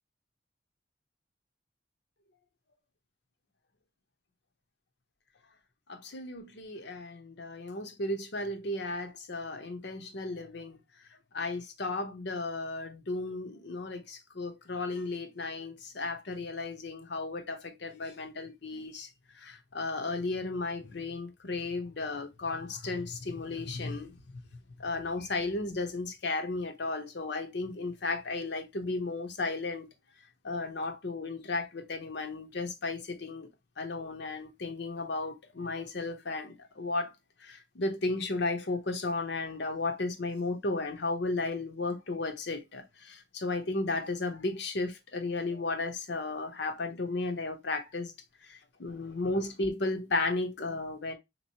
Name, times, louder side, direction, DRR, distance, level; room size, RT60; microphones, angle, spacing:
voice 1, 5.9-10.8 11.3-19.1 19.4-24.1 24.8-29.9 30.4-33.5 33.8-37.1 37.4-48.1 48.5-51.1, left 3 dB, 65° left, 0.8 m, -34 dB
3.9 x 3.0 x 2.8 m
head